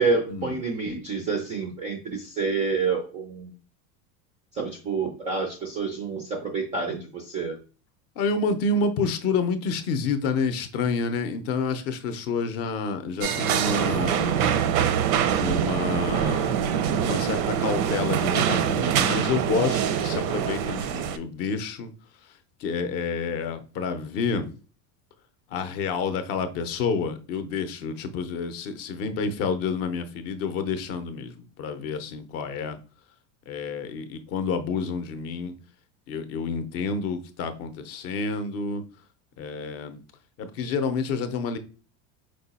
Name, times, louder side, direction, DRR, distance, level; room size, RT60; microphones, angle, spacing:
voice 1, 0.0-3.5 4.5-7.6, right 4 dB, 20° right, 0.3 m, -28 dB
voice 2, 8.2-14.5 15.4-16.6 16.9-21.9 22.6-24.5 25.5-32.8 33.5-35.6 36.1-38.8 39.4-40.0 40.4-41.6, left 4 dB, 35° left, 0.5 m, -29 dB
sound 1, 13.2-21.2, right 9 dB, 85° right, 0.7 m, -24 dB
4.7 x 2.2 x 4.0 m
cardioid pair, 160°, 42 cm